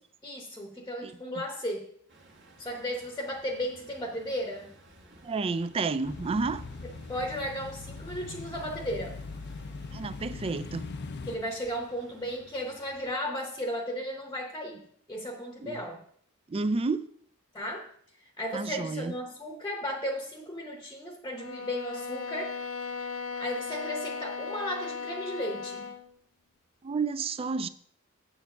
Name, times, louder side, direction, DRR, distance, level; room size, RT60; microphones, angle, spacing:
voice 1, 0.2-1.9 2.6-4.7 6.8-9.2 11.3-16.0 17.5-17.9 18.4-22.6 22.8-25.9, equal, 15° left, 0.9 m, -35 dB
voice 2, 1.0-1.4 5.2-6.6 9.9-10.9 15.6-15.8 16.5-17.1 18.5-19.1 26.8-27.7, right 4 dB, 25° right, 0.3 m, -31 dB
Truck, 2.1-13.1, right 1 dB, 55° right, 1.9 m, -56 dB
sound 1, 6.0-11.4, left 4 dB, 50° left, 0.5 m, -41 dB
sound 2, 21.3-26.1, left 5 dB, 75° left, 0.8 m, -37 dB
8.2 x 4.6 x 6.6 m
head